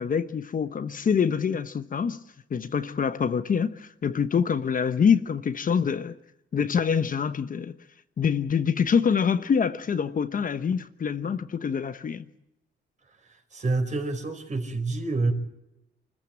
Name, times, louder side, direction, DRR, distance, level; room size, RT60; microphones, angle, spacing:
voice 1, 0.0-2.2 2.5-6.2 6.5-7.8 8.2-12.3, left 6 dB, 45° left, 1.1 m, -25 dB
voice 2, 13.5-15.3, right 3 dB, 35° right, 4.8 m, -27 dB
24.5 x 14.5 x 8.8 m
cardioid pair, 90°, 20 cm